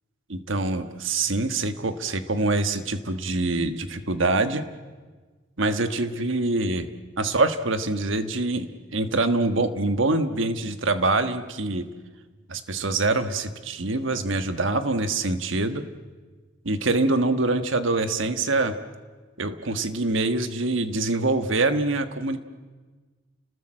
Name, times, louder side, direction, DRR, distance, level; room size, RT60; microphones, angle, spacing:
voice 1, 0.3-4.6 5.6-6.9 7.2-11.8 12.5-15.8 16.6-18.7 19.4-22.4, right 2 dB, 65° right, 9 dB, 1.5 m, -25 dB
30.0 x 19.5 x 7.7 m, 1.4 s
head